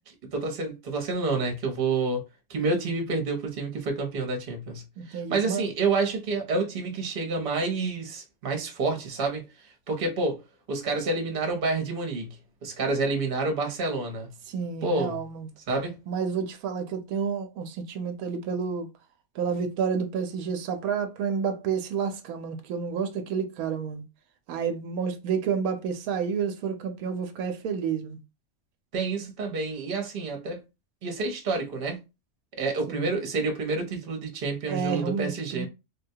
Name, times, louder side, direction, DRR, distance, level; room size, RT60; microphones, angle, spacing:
voice 1, 0.3-9.4 9.9-10.4 10.7-12.4 12.6-14.3 14.8-15.2 15.7-16.0 28.9-30.6 31.0-32.0 32.6-35.7, right 3 dB, 45° right, 1.0 m, -28 dB
voice 2, 5.0-5.6 14.5-15.5 16.1-18.9 19.3-24.0 24.5-28.2 32.9-33.1 34.7-35.7, right 6 dB, 90° right, 1.1 m, -30 dB
3.6 x 2.2 x 2.7 m
omnidirectional pair, 1.5 m